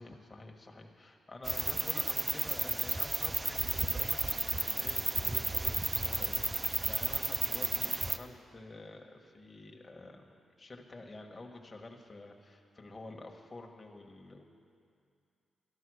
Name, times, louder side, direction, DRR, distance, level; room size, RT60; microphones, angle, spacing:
voice 1, 0.0-14.4, left 2 dB, 30° left, 2 dB, 1.4 m, -49 dB
sound 1, 1.4-8.2, right 2 dB, 25° right, 0.6 m, -33 dB
13.0 x 12.5 x 6.3 m, 2.4 s
cardioid pair, 95°, 0 cm